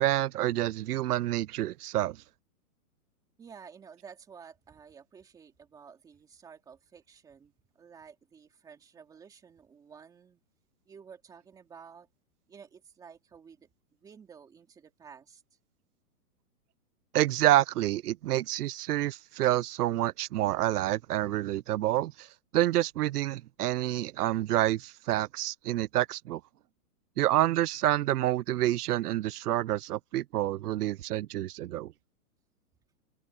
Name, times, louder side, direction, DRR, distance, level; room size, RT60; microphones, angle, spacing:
voice 1, 0.0-2.2 17.1-22.3 22.5-26.4 27.2-31.9, right 14 dB, 90° right, 0.6 m, -28 dB
voice 2, 3.4-10.4 10.9-12.1 12.5-13.7 14.0-15.4, right 6 dB, 10° right, 2.8 m, -52 dB
hypercardioid pair, 175°, 45 cm